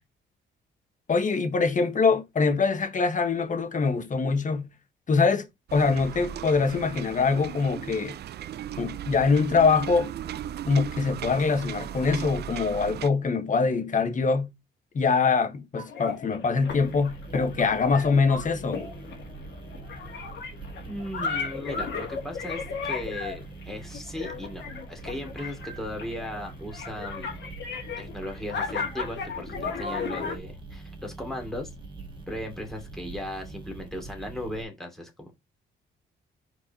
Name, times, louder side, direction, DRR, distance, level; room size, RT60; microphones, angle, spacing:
voice 1, 1.1-4.7 5.1-5.5 5.7-8.1 8.8-10.1 10.7-14.5 14.9-18.8, left 4 dB, 40° left, 1.5 m, -24 dB
sound 1, 5.7-13.1, right 11 dB, 55° right, 0.5 m, -37 dB
sound 2, 15.7-30.4, left 5 dB, 65° left, 2.3 m, -35 dB
sound 3, 16.7-34.6, right 3 dB, 25° right, 2.0 m, -43 dB
voice 2, 20.8-27.5 28.0-31.7 32.3-35.3, left 1 dB, ahead, 2.8 m, -37 dB
4.8 x 4.7 x 4.3 m
cardioid pair, 90°, 20 cm